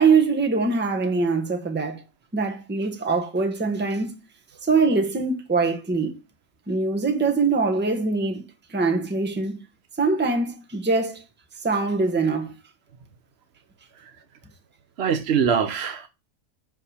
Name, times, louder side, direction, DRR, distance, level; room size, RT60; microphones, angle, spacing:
voice 1, 0.0-2.0 2.3-4.2 4.6-6.1 6.7-8.4 8.7-9.6 10.0-11.2 11.6-12.5, right 4 dB, 10° right, 1.0 m, -23 dB
voice 2, 15.0-16.1, right 7 dB, 55° right, 0.8 m, -23 dB
5.7 x 5.6 x 4.9 m
omnidirectional pair, 1.5 m